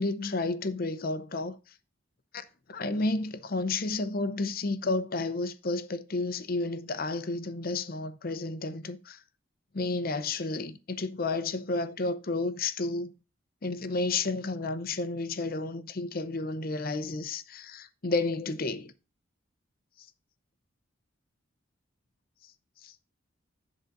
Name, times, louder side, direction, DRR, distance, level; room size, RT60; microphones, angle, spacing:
voice 1, 0.0-1.6 2.3-9.2 9.7-13.1 13.6-18.9 22.8-22.9, left 3 dB, 45° left, 0.7 m, -31 dB
10.5 x 3.9 x 5.2 m
head